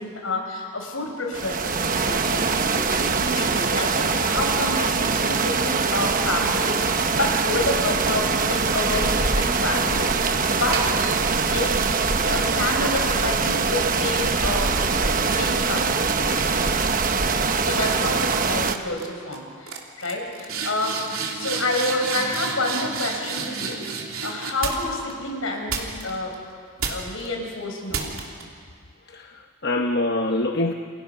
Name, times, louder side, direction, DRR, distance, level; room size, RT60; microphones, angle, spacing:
voice 1, 0.0-1.7 2.0-11.0 11.4-16.0 17.5-26.4 26.9-28.2, left 2 dB, 75° left, 2 dB, 5.1 m, -29 dB
sound 1, 1.3-18.8, right 4 dB, 40° right, 1.0 m, -23 dB
sound 2, 10.7-11.7 12.4-15.9 16.3-16.7 17.4-17.6 17.9-18.4 18.6-19.1 19.3-19.4 19.7-25.1 25.7-26.4 26.8-27.3 27.9-28.4, right 5 dB, 80° right, 3.0 m, -32 dB
voice 2, 29.1-30.7, left 2 dB, 50° left, 4 dB, 0.9 m, -25 dB
29.0 x 28.0 x 5.7 m, 2.1 s
head